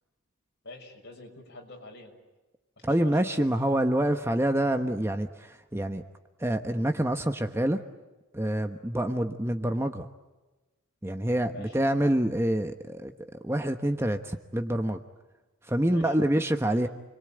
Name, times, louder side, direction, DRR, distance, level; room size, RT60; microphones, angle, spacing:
voice 1, 0.6-2.1 2.8-3.5 11.5-11.8 15.8-16.2, left 2 dB, 50° left, 2 dB, 6.5 m, -46 dB
voice 2, 2.8-6.0 6.4-7.8 8.3-10.1 11.0-15.0 15.7-16.9, right 1 dB, 10° right, 6 dB, 1.1 m, -27 dB
29.5 x 22.5 x 8.9 m, 1.1 s
head